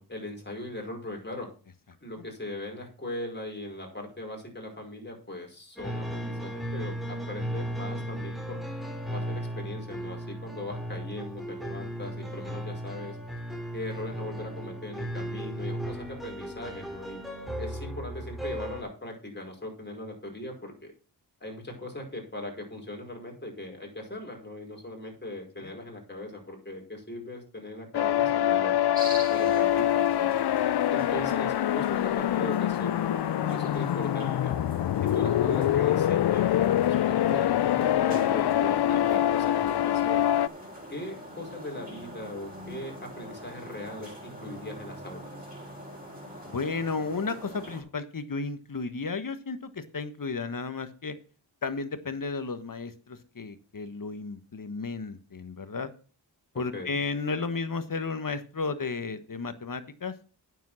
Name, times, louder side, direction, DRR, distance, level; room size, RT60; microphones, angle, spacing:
voice 1, 0.0-1.5 2.0-8.6 9.1-13.2 13.7-17.2 17.6-20.9 21.4-28.8 29.3-30.3 30.9-33.0 33.5-34.6 35.0-40.3 40.9-45.3 56.5-57.0, left 1 dB, 25° left, 1 dB, 5.3 m, -39 dB
sound 1, 5.8-18.8, equal, ahead, 3.6 m, -36 dB
sound 2, 27.9-40.5, left 12 dB, 65° left, 0.5 m, -25 dB
sound 3, 28.9-47.8, equal, 20° right, 6.8 m, -43 dB
voice 2, 46.5-51.2 51.6-55.9 56.5-60.1, left 4 dB, 50° left, 11 dB, 1.5 m, -33 dB
9.2 x 7.4 x 5.7 m, 0.37 s
cardioid pair, 50°, 42 cm